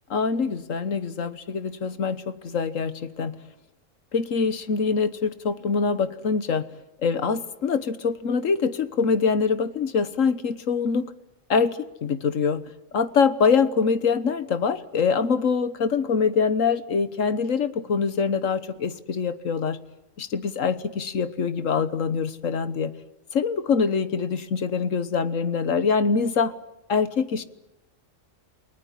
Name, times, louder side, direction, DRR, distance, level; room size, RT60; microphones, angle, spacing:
voice 1, 0.1-3.3 4.1-6.7 7.0-11.1 11.5-12.6 12.9-19.8 20.2-22.9 23.3-26.5 26.9-27.4, left 5 dB, 80° left, 13 dB, 1.6 m, -24 dB
29.5 x 19.5 x 10.0 m, 0.89 s
omnidirectional pair, 1.3 m